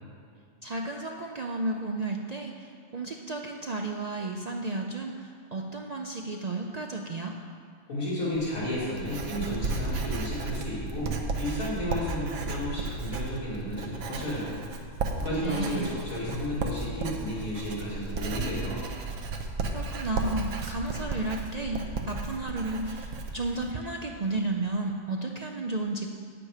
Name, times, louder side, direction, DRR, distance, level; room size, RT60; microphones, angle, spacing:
voice 1, 0.6-7.3 15.4-15.9 19.7-26.1, right 2 dB, 55° right, 2 dB, 0.4 m, -33 dB
voice 2, 7.9-14.6 15.2-18.8, left 1 dB, 85° left, -8 dB, 3.1 m, -32 dB
Writing, 8.3-23.7, right 3 dB, 85° right, 1.3 m, -34 dB
9.7 x 8.5 x 5.0 m, 2.2 s
omnidirectional pair, 1.4 m